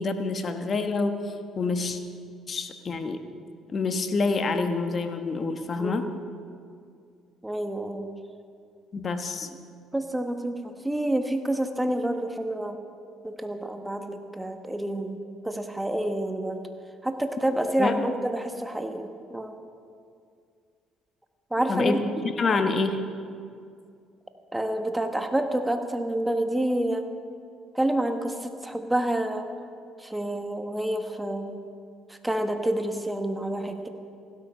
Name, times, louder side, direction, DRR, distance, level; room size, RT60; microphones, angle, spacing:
voice 1, 0.0-2.0 2.5-3.2 3.7-6.1 8.9-9.5 17.8-17.9 21.7-22.0 22.4-23.0, left 4 dB, 40° left, 7 dB, 1.3 m, -27 dB
voice 2, 5.8-6.1 7.4-8.1 9.9-12.8 13.2-15.2 15.4-16.6 17.0-19.6 21.5-22.0 24.5-27.1 27.7-29.5 30.0-31.6 32.1-33.9, right 1 dB, 10° right, 6 dB, 1.4 m, -28 dB
16.0 x 13.0 x 5.6 m, 2.3 s
supercardioid pair, 85°, 0 cm